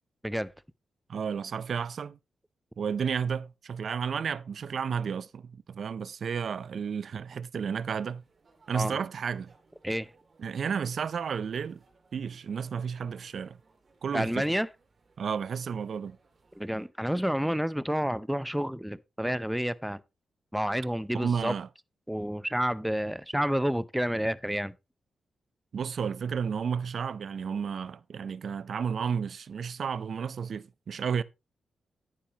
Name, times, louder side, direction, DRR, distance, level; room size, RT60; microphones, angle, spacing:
voice 1, 1.1-2.2 2.8-8.2 8.7-9.5 10.4-11.8 12.1-13.6 14.0-14.5 15.2-16.2 21.1-21.7 25.7-31.2, right 6 dB, 60° right, 0.5 m, -32 dB
sound 1, 8.1-16.9, right 3 dB, 45° right, 2.5 m, -64 dB
voice 2, 14.1-14.7 16.6-20.0 20.5-21.5 22.1-24.7, equal, 5° right, 0.5 m, -29 dB
10.0 x 9.6 x 2.9 m
cardioid pair, 105°, 0 cm